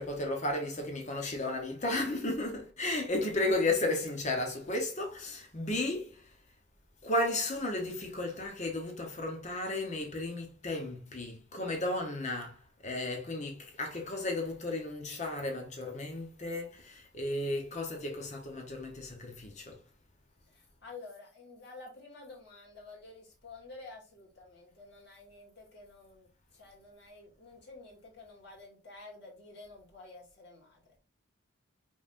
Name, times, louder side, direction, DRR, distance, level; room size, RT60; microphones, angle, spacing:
voice 1, 0.0-6.2 7.0-19.7, left 2 dB, 35° left, 1.0 m, -34 dB
voice 2, 20.5-31.0, left 3 dB, 55° left, 2.3 m, -51 dB
5.5 x 3.4 x 2.6 m
head